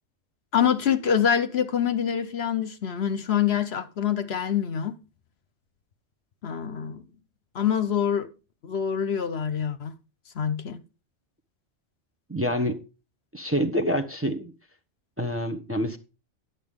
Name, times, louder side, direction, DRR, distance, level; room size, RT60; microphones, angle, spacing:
voice 1, 0.5-5.0 6.4-7.0 7.5-8.3 8.6-9.9 10.4-10.8, left 8 dB, 60° left, 1.0 m, -25 dB
voice 2, 12.3-12.8 13.3-14.5 15.2-16.0, equal, 10° right, 0.9 m, -27 dB
10.5 x 8.1 x 3.7 m
omnidirectional pair, 1.3 m